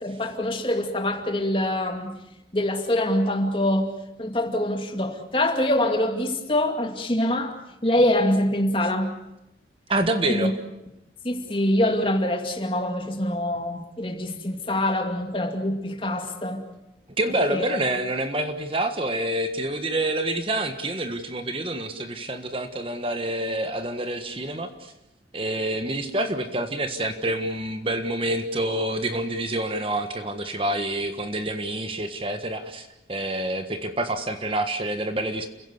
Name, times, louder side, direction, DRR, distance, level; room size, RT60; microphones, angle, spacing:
voice 1, 0.0-2.2 2.5-3.9 4.2-7.6 7.8-9.1 10.3-10.5 11.2-16.6 17.5-17.8, left 1 dB, 30° left, 2.4 m, -24 dB
voice 2, 9.9-10.5 17.2-24.9 25.3-35.5, right 1 dB, 30° right, 1.5 m, -27 dB
30.0 x 16.5 x 8.1 m
head